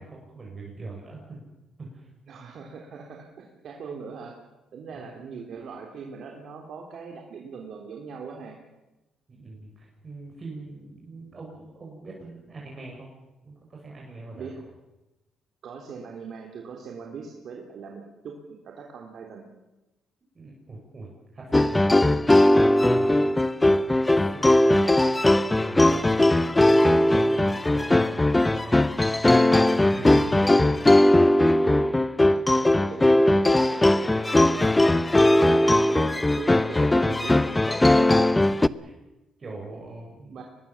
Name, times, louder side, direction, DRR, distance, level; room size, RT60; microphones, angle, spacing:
voice 1, 0.0-1.4 1.8-2.1 4.9-5.1 9.3-13.1 13.4-14.5 20.3-25.2 25.4-29.3 29.5-30.9 38.4-38.9 39.4-40.4, right 3 dB, 35° right, -2 dB, 6.0 m, -42 dB
voice 2, 2.3-4.4 4.7-8.6 14.4-14.5 15.6-19.5 26.0-26.4 32.2-33.6 34.3-34.4 35.2-38.3 40.3-40.4, right 5 dB, 65° right, 1 dB, 3.3 m, -40 dB
sound 1, 21.5-38.7, left 1 dB, 15° left, 0.7 m, -19 dB
24.0 x 20.5 x 7.2 m, 1.0 s
cardioid pair, 90°, 0 cm